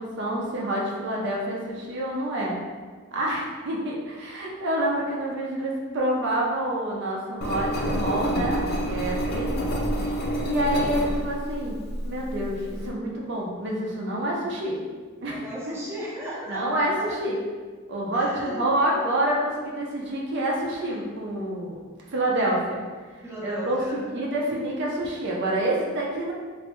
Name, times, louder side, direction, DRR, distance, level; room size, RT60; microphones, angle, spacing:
voice 1, 0.0-2.6 3.1-9.6 10.4-11.8 12.0-14.7 15.2-15.4 16.5-17.4 17.9-21.8 22.1-22.8 23.4-26.3, right 1 dB, 55° right, -3 dB, 0.6 m, -27 dB
Engine, 7.4-12.9, equal, 50° left, 0.5 m, -28 dB
voice 2, 15.3-16.6 17.0-17.2 18.1-19.2 23.2-24.3, equal, 10° right, -7 dB, 0.6 m, -37 dB
3.2 x 2.6 x 3.0 m, 1.5 s
head